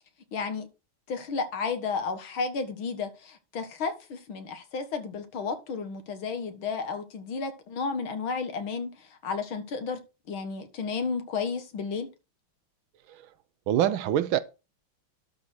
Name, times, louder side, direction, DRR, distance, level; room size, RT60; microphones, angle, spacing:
voice 1, 0.3-0.7 1.1-10.0 10.3-12.1, left 5 dB, 75° left, 2.2 m, -32 dB
voice 2, 13.7-14.4, right 11 dB, 80° right, 1.5 m, -25 dB
12.0 x 4.1 x 6.3 m
omnidirectional pair, 2.2 m